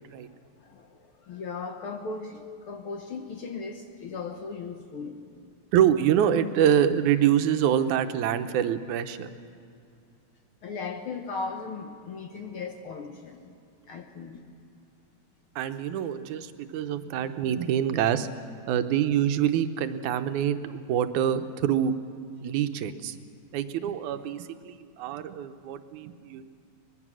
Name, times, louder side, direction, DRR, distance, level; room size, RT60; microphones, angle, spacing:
voice 1, 0.1-5.2 10.6-13.5 13.9-14.5, left 4 dB, 60° left, 5 dB, 1.5 m, -37 dB
voice 2, 5.7-9.3 15.6-18.3 18.7-21.9 22.4-23.2 23.5-26.4, right 9 dB, 85° right, 10 dB, 2.3 m, -25 dB
23.5 x 20.5 x 6.2 m, 2.4 s
omnidirectional pair, 3.4 m